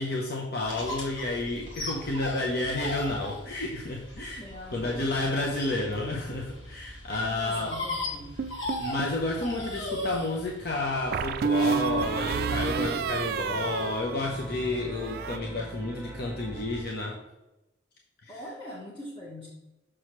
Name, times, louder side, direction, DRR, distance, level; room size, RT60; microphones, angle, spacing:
voice 1, 0.0-7.8 8.8-17.2 18.2-18.4, left 2 dB, 55° left, -1 dB, 0.8 m, -31 dB
sound 1, 0.6-12.2, left 2 dB, 90° left, 1.8 m, -38 dB
voice 2, 4.4-5.8 7.1-8.3 18.3-19.5, left 1 dB, 25° left, -6 dB, 1.2 m, -42 dB
sound 2, 8.4-9.2 11.1-14.6 14.9-15.4, right 6 dB, 55° right, 0.3 m, -30 dB
sound 3, 11.7-16.8, right 1 dB, 10° right, 1.2 m, -40 dB
6.2 x 6.2 x 3.1 m, 0.97 s
head